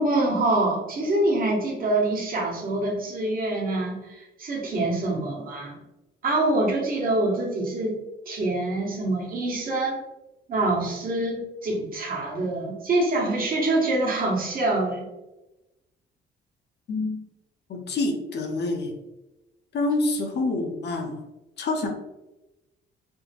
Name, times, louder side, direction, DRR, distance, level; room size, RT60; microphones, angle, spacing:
voice 1, 0.0-5.8 6.2-8.0 8.2-10.0 10.5-15.1, right 2 dB, 45° right, -2 dB, 1.2 m, -25 dB
voice 2, 16.9-17.2 17.7-18.9 19.7-21.2 21.6-21.9, left 2 dB, 60° left, 3 dB, 0.7 m, -27 dB
4.4 x 2.1 x 2.9 m, 1.0 s
cardioid pair, 90°, 20 cm